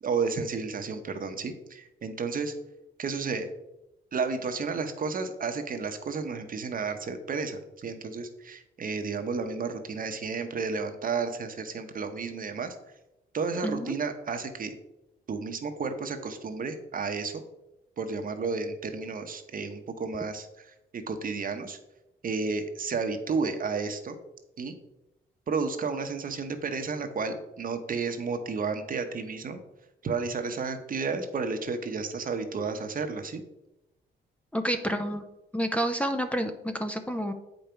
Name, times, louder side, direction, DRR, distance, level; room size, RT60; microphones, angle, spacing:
voice 1, 0.0-2.5 3.0-3.5 4.1-12.8 13.3-14.7 15.3-17.4 18.0-20.7 20.9-21.8 22.2-24.2 24.6-24.7 25.5-29.6 30.0-33.4, right 4 dB, 45° right, 7 dB, 1.0 m, -32 dB
voice 2, 13.6-13.9 34.5-35.2 35.5-37.3, equal, 5° left, 4 dB, 0.7 m, -29 dB
8.0 x 5.3 x 4.5 m, 0.92 s
cardioid pair, 90°, 20 cm